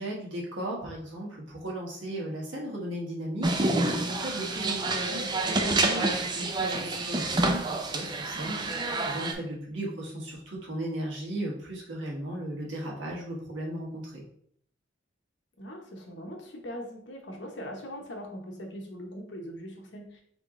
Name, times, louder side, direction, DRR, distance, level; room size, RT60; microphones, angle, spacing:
voice 1, 0.0-3.5 4.1-14.2, right 1 dB, 80° right, -3 dB, 1.5 m, -36 dB
sound 1, 3.4-9.3, right 2 dB, 25° right, 0.4 m, -28 dB
voice 2, 15.6-20.2, equal, 70° left, 1 dB, 1.1 m, -41 dB
3.6 x 3.5 x 3.8 m, 0.64 s
head